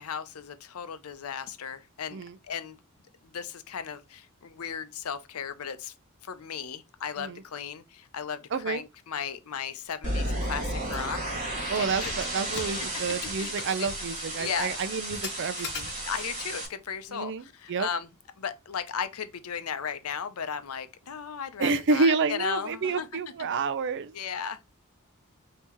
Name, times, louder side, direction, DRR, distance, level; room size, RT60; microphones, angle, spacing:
voice 1, 0.0-2.2 2.5-2.8 3.2-5.9 6.2-11.3 11.8-12.1 12.4-12.9 13.4-13.5 13.8-13.9 14.4-14.8 16.0-18.1 18.4-23.1 24.1-24.6, left 7 dB, 85° left, 0.6 m, -36 dB
voice 2, 8.5-8.8 11.7-15.9 17.1-17.4 17.7-17.9 21.6-24.1, right 4 dB, 60° right, 0.5 m, -29 dB
Keys jangling, 9.8-10.0 10.3-10.4 10.8-11.2 11.6-16.4, left 5 dB, 55° left, 0.8 m, -42 dB
sound 1, 10.0-16.7, right 1 dB, 35° right, 2.9 m, -33 dB
5.6 x 2.9 x 2.9 m
head